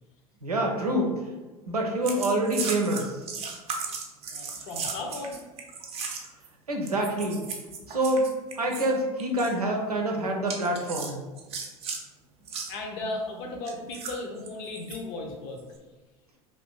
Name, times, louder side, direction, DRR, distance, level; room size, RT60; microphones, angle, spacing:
voice 1, 0.4-1.1 1.7-3.2 6.7-7.4 7.9-8.3 8.6-11.2, right 1 dB, 85° right, 1 dB, 0.6 m, -26 dB
sound 1, 2.0-6.5 6.9-8.9 9.2-9.5 10.5-12.0 12.4-12.7 13.7-15.0 15.6-15.8, right 5 dB, 30° right, 0.6 m, -36 dB
voice 2, 4.3-5.4 12.7-15.6, left 2 dB, 50° left, 1 dB, 0.7 m, -36 dB
2.7 x 2.6 x 3.5 m, 1.2 s
figure-of-eight pair, 80°, 19 cm